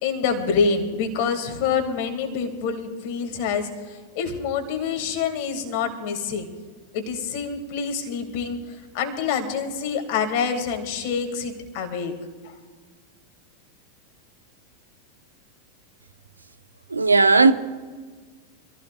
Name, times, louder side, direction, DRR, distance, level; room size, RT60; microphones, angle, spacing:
voice 1, 0.0-3.7 4.2-6.5 6.9-8.6 8.9-12.1, left 6 dB, 45° left, 2.4 m, -26 dB
voice 2, 16.9-17.5, right 3 dB, 80° right, 0.8 m, -15 dB
26.0 x 15.5 x 2.5 m
figure-of-eight pair, 90°, 0 cm